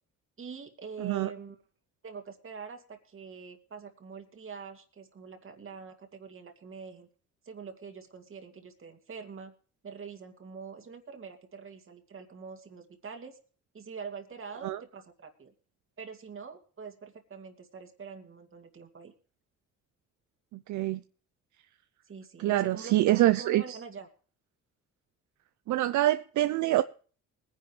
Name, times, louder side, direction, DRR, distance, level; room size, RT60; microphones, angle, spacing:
voice 1, 0.4-1.6 2.0-7.1 7.4-9.5 9.8-13.4 13.7-15.5 16.0-19.1 22.1-24.1, right 5 dB, 45° right, 2.3 m, -44 dB
voice 2, 1.0-1.3 14.6-14.8 20.5-21.0 22.4-23.8 25.7-26.8, right 15 dB, 75° right, 0.6 m, -25 dB
20.5 x 10.5 x 3.2 m
cardioid pair, 90°, 30 cm